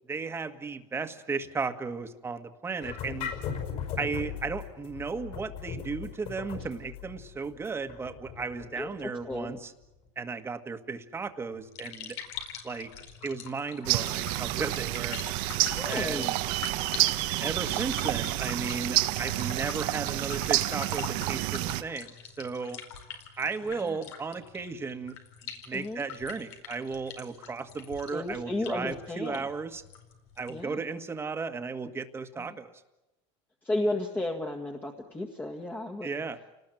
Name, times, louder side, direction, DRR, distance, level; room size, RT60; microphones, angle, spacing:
voice 1, 0.1-3.3 4.0-9.7 10.2-12.2 12.6-12.9 13.2-15.2 15.9-16.3 17.4-22.8 23.4-25.2 25.7-29.8 30.4-32.7 36.0-36.4, right 4 dB, 15° right, 8 dB, 1.8 m, -35 dB
sound 1, 2.8-9.6, left 7 dB, 50° left, 5.3 m, -38 dB
voice 2, 8.8-9.6 15.8-16.3 23.7-24.0 25.7-26.0 28.1-29.5 30.5-30.8 32.3-32.6 33.6-36.1, left 1 dB, 10° left, 2 dB, 1.9 m, -34 dB
sound 2, 11.5-30.7, left 8 dB, 80° left, 4.7 m, -44 dB
sound 3, 13.9-21.8, right 17 dB, 65° right, 1.3 m, -29 dB
29.5 x 19.5 x 9.3 m, 0.99 s
supercardioid pair, 135°, 14 cm